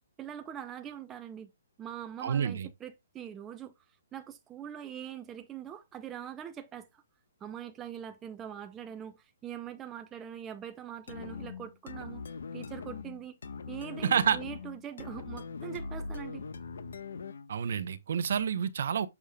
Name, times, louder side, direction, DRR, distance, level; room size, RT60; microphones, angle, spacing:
voice 1, 0.2-1.5 1.8-3.7 4.1-7.0 7.4-12.2 12.5-13.4 13.7-16.4, right 9 dB, 10° right, 0.6 m, -43 dB
voice 2, 2.2-2.7 14.0-14.4 17.5-19.1, right 7 dB, 55° right, 0.9 m, -28 dB
sound 1, 11.1-17.6, left 4 dB, 80° left, 1.2 m, -41 dB
7.2 x 6.7 x 2.3 m
hypercardioid pair, 170°, 0 cm